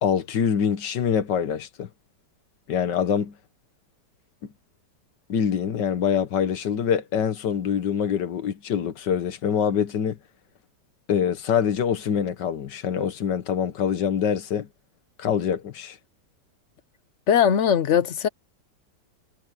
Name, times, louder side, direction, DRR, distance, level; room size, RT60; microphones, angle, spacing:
voice 1, 0.0-1.9 2.7-3.4 5.3-10.2 11.1-14.7 15.2-16.0, left 8 dB, 80° left, 1.8 m, -25 dB
voice 2, 17.3-18.3, left 8 dB, 55° left, 0.9 m, -20 dB
omnidirectional pair, 1.9 m